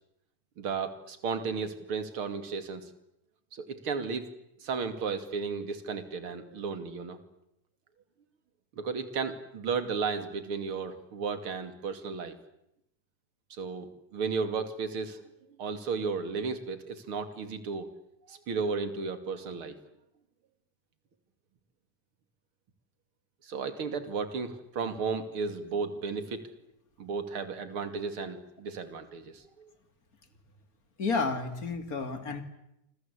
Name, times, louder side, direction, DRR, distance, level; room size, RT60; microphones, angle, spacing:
voice 1, 0.6-2.8 3.5-4.3 4.6-7.2 8.8-12.4 13.6-15.2 15.6-17.9 18.3-19.8 23.4-26.4 27.0-29.7, right 5 dB, 45° right, 10 dB, 3.1 m, -34 dB
voice 2, 31.0-32.4, left 4 dB, 30° left, 9 dB, 2.8 m, -31 dB
28.5 x 25.5 x 8.3 m, 0.84 s
omnidirectional pair, 3.6 m